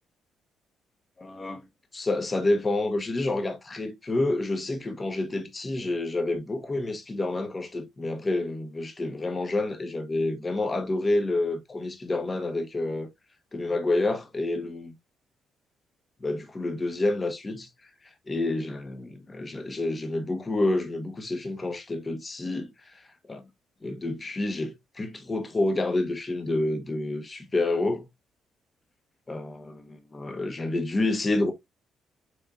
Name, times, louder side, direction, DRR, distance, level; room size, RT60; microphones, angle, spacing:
voice 1, 1.2-1.6 1.9-13.1 13.5-14.9 16.2-23.4 23.8-28.1 29.3-31.5, left 2 dB, 25° left, 1.0 m, -29 dB
6.3 x 3.4 x 2.4 m
cardioid pair, 90°, 0 cm